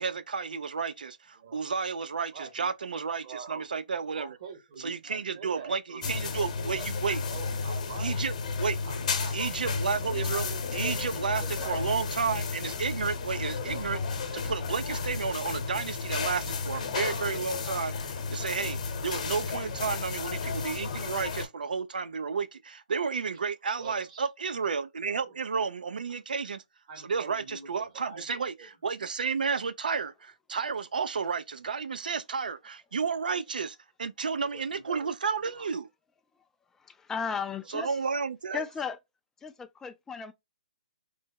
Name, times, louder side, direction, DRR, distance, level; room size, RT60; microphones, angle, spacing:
voice 1, 0.0-4.4 4.8-7.2 8.0-8.3 8.6-8.8 9.3-26.6 27.0-35.9 37.7-38.6, right 5 dB, 80° right, 0.4 m, -32 dB
voice 2, 2.3-3.6 4.1-6.9 7.3-8.1 8.8-9.4 9.6-9.8 10.4-11.8 23.8-24.3 25.1-25.3 26.3-26.4 26.9-27.7 27.9-28.7 34.4-35.7 37.7-37.9, right 5 dB, 45° right, 1.0 m, -45 dB
sound 1, 6.0-21.5, left 4 dB, 55° left, 0.9 m, -33 dB
voice 3, 36.8-38.0 38.5-39.0 39.4-40.3, left 6 dB, 10° left, 0.3 m, -35 dB
3.3 x 2.0 x 3.5 m
hypercardioid pair, 140°, 5 cm